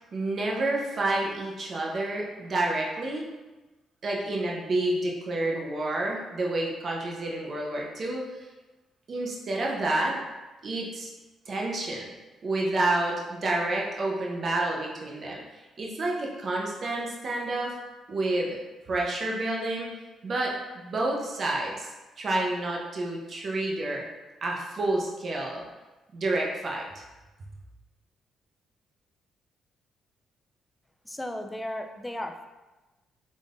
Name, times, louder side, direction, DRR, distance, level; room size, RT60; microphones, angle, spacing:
voice 1, 0.0-3.2 4.0-8.5 9.1-10.2 10.6-11.1 11.5-12.1 12.4-15.4 15.8-17.8 18.1-18.6 18.9-21.9 22.2-24.0 24.4-25.6 26.1-27.0, right 2 dB, 45° right, -2 dB, 0.8 m, -29 dB
voice 2, 31.0-32.5, left 1 dB, 10° left, 5 dB, 0.4 m, -35 dB
5.4 x 3.8 x 2.5 m, 1.1 s
cardioid pair, 90°, 0 cm